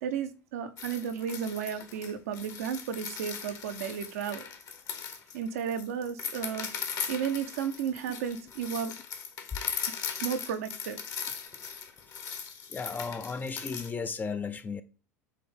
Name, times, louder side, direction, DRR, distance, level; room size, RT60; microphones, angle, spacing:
voice 1, 0.0-4.5 5.3-6.7 7.1-8.9 10.2-11.0, right 8 dB, 65° right, 0.9 m, -33 dB
sound 1, 0.8-13.9, left 7 dB, 40° left, 1.3 m, -39 dB
voice 2, 12.7-14.8, left 5 dB, 20° left, 0.6 m, -35 dB
7.3 x 3.4 x 3.9 m
figure-of-eight pair, 75°, 9 cm